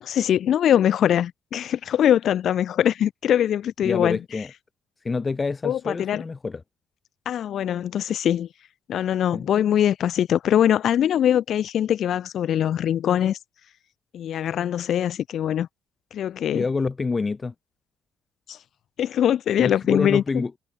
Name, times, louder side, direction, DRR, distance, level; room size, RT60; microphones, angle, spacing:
voice 1, 0.0-4.2 5.6-6.2 7.3-8.5 8.9-13.4 14.1-15.7 16.1-16.6 18.5-18.6 19.0-20.2, left 10 dB, 70° left, 0.8 m, -22 dB
voice 2, 3.8-4.5 5.0-6.6 9.3-9.5 16.5-17.5 19.6-20.5, left 4 dB, 30° left, 1.9 m, -27 dB
cardioid pair, 90°, 0 cm